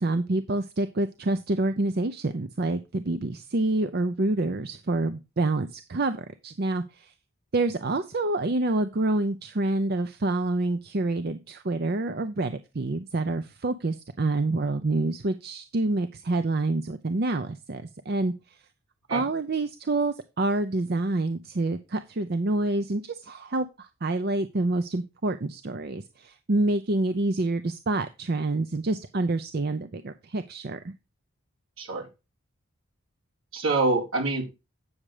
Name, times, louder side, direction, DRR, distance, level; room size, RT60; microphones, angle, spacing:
voice 1, 0.0-6.2 6.4-7.1 7.5-18.3 19.1-30.9, right 2 dB, 45° right, 10 dB, 0.5 m, -27 dB
voice 2, 31.8-32.1 33.5-34.4, right 3 dB, 70° right, 0 dB, 3.5 m, -25 dB
8.7 x 6.5 x 4.9 m, 0.27 s
head